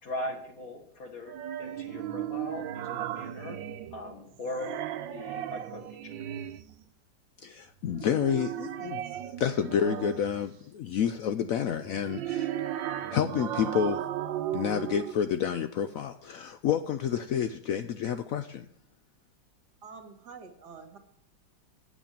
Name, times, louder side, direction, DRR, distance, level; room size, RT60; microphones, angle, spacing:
voice 1, 0.0-3.6 3.9-4.7 5.1-6.1, left 1 dB, 50° left, 4 dB, 2.0 m, -39 dB
sound 1, 1.3-4.1 4.4-6.7 7.9-10.4 11.8-15.1, right 11 dB, 85° right, 1.4 m, -35 dB
voice 2, 7.4-9.0 9.4-12.5 13.1-14.0 14.5-18.7, left 8 dB, 85° left, 9 dB, 0.7 m, -29 dB
voice 3, 19.8-21.0, right 5 dB, 60° right, 6 dB, 2.2 m, -47 dB
8.1 x 7.5 x 8.7 m, 0.69 s
omnidirectional pair, 2.0 m